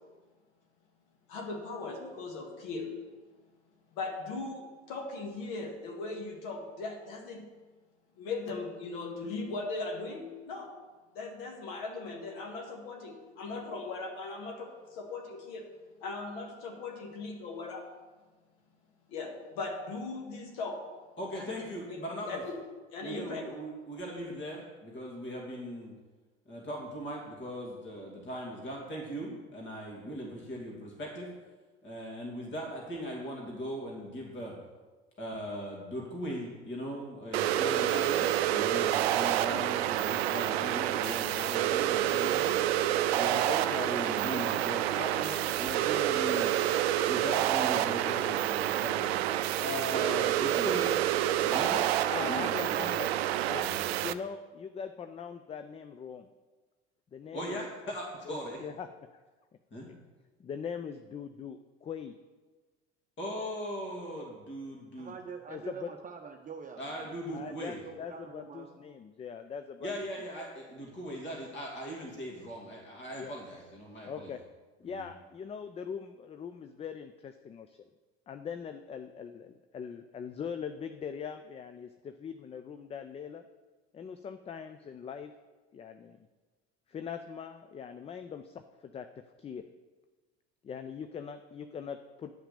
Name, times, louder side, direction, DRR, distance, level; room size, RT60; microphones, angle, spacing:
voice 1, 1.3-3.0 3.9-7.5 8.2-10.7 11.1-15.7 16.0-17.8 19.1-20.8 21.3-21.5 21.9-22.0 22.3-22.6 22.9-23.4, left 3 dB, 60° left, 1 dB, 2.2 m, -38 dB
voice 2, 21.2-22.4 23.0-25.9 26.5-31.3 31.8-34.5 35.2-42.5 43.1-46.6 47.1-49.2 49.6-51.0 51.4-51.9 52.2-52.9 57.3-58.6 59.7-59.9 63.2-65.1 66.8-67.8 69.8-74.3 74.8-75.1, equal, 35° left, -2 dB, 2.8 m, -39 dB
sound 1, 37.3-54.1, right 12 dB, 65° right, 0.5 m, -28 dB
voice 3, 52.1-53.1 53.5-53.7 54.0-56.3 57.1-57.6 58.3-58.9 59.1-59.2 59.9-60.0 60.4-62.2 65.5-65.9 67.3-69.9 73.1-73.3 74.1-74.4 74.8-77.8 78.3-83.4 83.9-85.3 85.7-86.2 86.9-89.1 89.4-89.7 90.6-92.3, left 7 dB, 20° left, 8 dB, 0.4 m, -41 dB
voice 4, 65.0-67.2 67.4-68.8, right 6 dB, 25° right, 3 dB, 0.8 m, -45 dB
10.5 x 5.8 x 7.0 m, 1.3 s
figure-of-eight pair, 65°, 33 cm